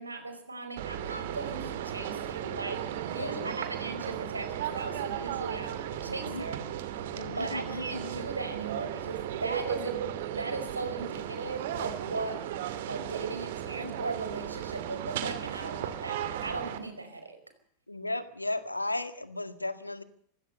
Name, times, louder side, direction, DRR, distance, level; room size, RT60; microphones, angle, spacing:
voice 1, 0.0-6.6 7.2-12.4 12.9-17.4, right 3 dB, 80° right, 7 dB, 4.9 m, -38 dB
sound 1, 0.8-16.8, right 10 dB, 55° right, 2.5 m, -36 dB
voice 2, 3.2-3.6 6.1-6.4 7.1-8.2 17.9-20.0, left 2 dB, 85° left, 12 dB, 1.8 m, -35 dB
25.5 x 16.5 x 6.7 m, 0.64 s
figure-of-eight pair, 90°, 0 cm